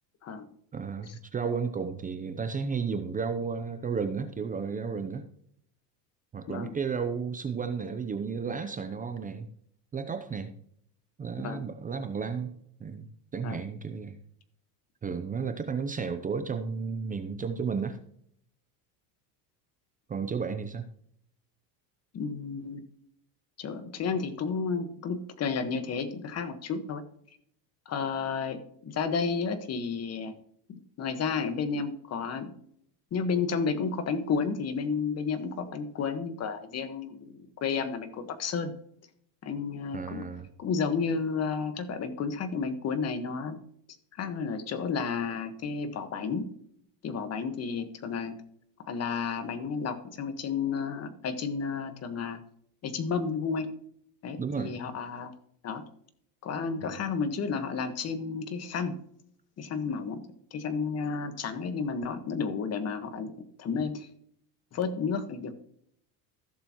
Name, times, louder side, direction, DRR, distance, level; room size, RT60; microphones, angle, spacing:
voice 1, 0.7-5.2 6.3-9.5 9.9-10.5 11.2-12.5 12.8-14.2 15.0-18.0 20.1-20.8 39.9-40.5 54.4-54.8 56.8-56.9, right 5 dB, 15° right, 8 dB, 0.6 m, -33 dB
voice 2, 22.1-22.8 23.6-27.0 27.9-30.3 30.7-32.5 33.1-38.7 39.4-40.2 40.6-43.6 44.2-46.5 47.0-48.3 48.9-52.4 52.8-53.7 54.2-55.3 55.6-55.8 56.4-59.0 59.6-60.2 60.5-63.3 63.6-64.1 64.7-65.5, left 5 dB, 30° left, 9 dB, 1.4 m, -32 dB
15.5 x 6.8 x 3.0 m, 0.67 s
supercardioid pair, 135°, 50 cm